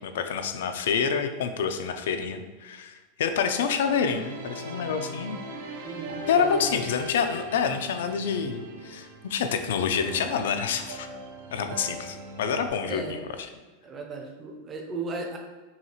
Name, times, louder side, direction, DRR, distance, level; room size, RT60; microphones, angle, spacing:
voice 1, 0.0-5.4 6.3-11.1 11.5-13.3, left 6 dB, 80° left, 8 dB, 0.4 m, -27 dB
sound 1, 3.4-12.7, right 1 dB, 90° right, 0.7 m, -40 dB
voice 2, 5.8-6.8 12.9-13.1 13.8-15.4, right 3 dB, 20° right, 1 dB, 0.5 m, -36 dB
5.5 x 2.4 x 2.9 m, 1.3 s
supercardioid pair, 170°, 0 cm